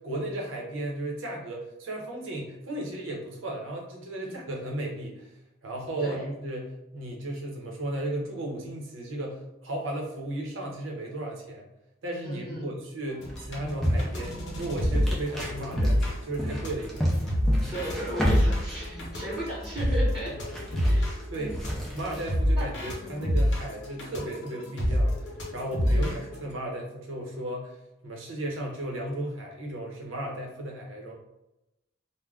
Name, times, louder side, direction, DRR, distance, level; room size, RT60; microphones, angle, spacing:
voice 1, 0.0-5.3 5.6-11.7 12.0-17.1 20.3-20.6 21.3-21.6 21.9-31.1, right 1 dB, 80° right, 0 dB, 0.7 m, -35 dB
voice 2, 12.2-12.7 17.7-20.3 20.8-22.0 22.5-22.6 23.0-23.3 25.9-26.2, right 1 dB, 20° right, -10 dB, 0.9 m, -36 dB
sound 1, 13.1-26.4, equal, 60° left, 0.8 m, -27 dB
sound 2, 13.2-22.3, equal, ahead, 0.4 m, -32 dB
2.3 x 2.1 x 3.4 m, 0.89 s
head